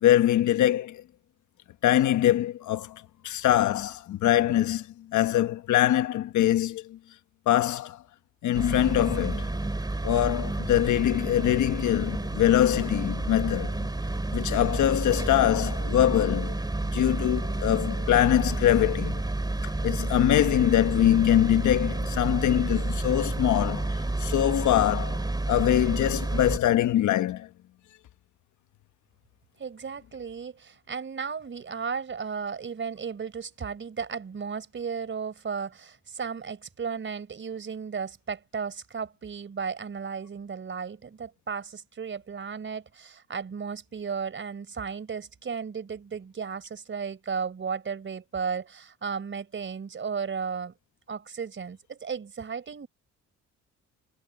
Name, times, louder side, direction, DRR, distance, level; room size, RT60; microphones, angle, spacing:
voice 1, 0.0-1.0 1.8-7.0 7.5-8.0 8.4-9.5 10.0-13.9 14.3-16.6 16.9-19.2 19.6-25.2 25.5-27.5, left 12 dB, 75° left, 1.3 m, -23 dB
sound 1, 8.5-26.6, right 2 dB, 15° right, 3.6 m, -30 dB
voice 2, 29.6-50.7 51.1-52.9, right 6 dB, 40° right, 4.3 m, -34 dB
cardioid pair, 90°, 30 cm